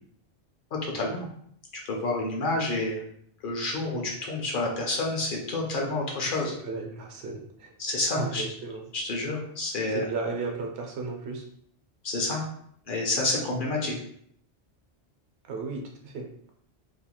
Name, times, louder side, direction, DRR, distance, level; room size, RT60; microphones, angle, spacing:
voice 1, 0.7-1.3 1.9-3.0 3.4-6.5 7.8-8.4 8.9-10.0 12.0-12.4 12.9-14.0, left 2 dB, 60° left, -1 dB, 0.7 m, -29 dB
voice 2, 6.6-7.7 8.1-8.8 9.9-11.4 15.5-16.3, right 3 dB, 75° right, 1 dB, 0.9 m, -34 dB
2.7 x 2.3 x 2.8 m, 0.67 s
omnidirectional pair, 1.1 m